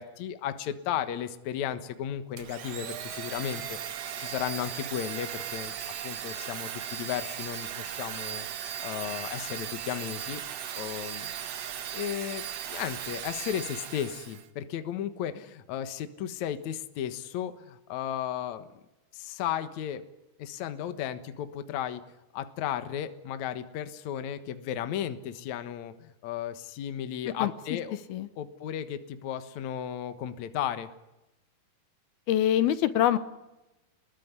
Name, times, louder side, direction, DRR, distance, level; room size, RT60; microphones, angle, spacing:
voice 1, 0.0-5.7 6.0-8.5 8.8-10.4 10.7-11.3 11.9-18.7 19.1-20.0 20.4-22.0 22.3-28.0 28.4-30.9, left 10 dB, 60° left, 10 dB, 2.3 m, -34 dB
Domestic sounds home sounds, 2.4-14.5, right 9 dB, 55° right, 1.9 m, -37 dB
voice 2, 32.3-33.2, left 11 dB, 75° left, 12 dB, 2.9 m, -24 dB
28.0 x 21.0 x 9.7 m, 1.0 s
omnidirectional pair, 4.5 m